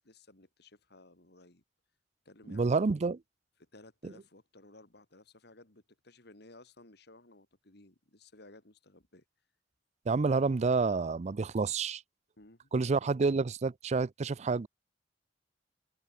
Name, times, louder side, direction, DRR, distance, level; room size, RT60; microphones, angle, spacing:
voice 1, 0.0-1.6 2.3-2.8 3.6-9.2 12.4-12.7, left 2 dB, 60° left, 3.5 m, -57 dB
voice 2, 2.5-3.2 4.0-4.1 10.1-12.0 12.7-14.7, right 4 dB, 40° right, 0.4 m, -29 dB
head